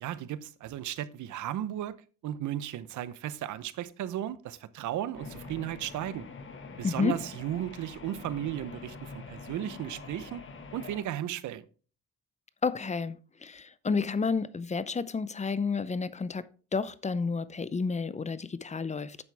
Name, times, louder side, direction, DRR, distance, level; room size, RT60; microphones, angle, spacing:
voice 1, 0.0-1.9 2.2-6.3 6.8-10.4 10.7-11.6, right 12 dB, 75° right, 0.8 m, -35 dB
sound 1, 5.1-11.0, left 4 dB, 40° left, 1.6 m, -45 dB
voice 2, 6.8-7.1 12.6-19.2, left 5 dB, 25° left, 0.7 m, -31 dB
9.7 x 7.3 x 3.4 m
cardioid pair, 90°, 30 cm